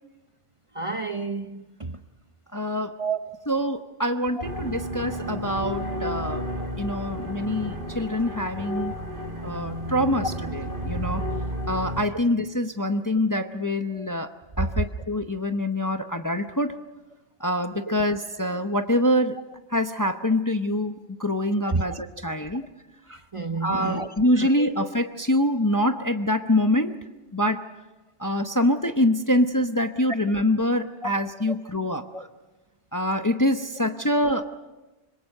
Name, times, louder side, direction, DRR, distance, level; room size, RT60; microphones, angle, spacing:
voice 1, 0.8-2.0 3.0-3.4 13.9-14.1 21.7-21.8 23.1-24.1 24.4-24.7 32.1-32.2, right 4 dB, 30° right, 8 dB, 0.8 m, -30 dB
voice 2, 2.5-3.0 3.5-6.5 6.8-8.9 9.4-11.2 11.7-14.3 14.6-16.8 17.4-19.4 19.7-22.6 23.6-27.0 27.3-27.7 28.2-32.3 32.9-34.4, left 1 dB, 20° left, 7 dB, 0.7 m, -25 dB
sound 1, 4.4-12.0, equal, 50° right, 2.2 m, -32 dB
26.5 x 21.5 x 6.5 m, 1.1 s
omnidirectional pair, 1.2 m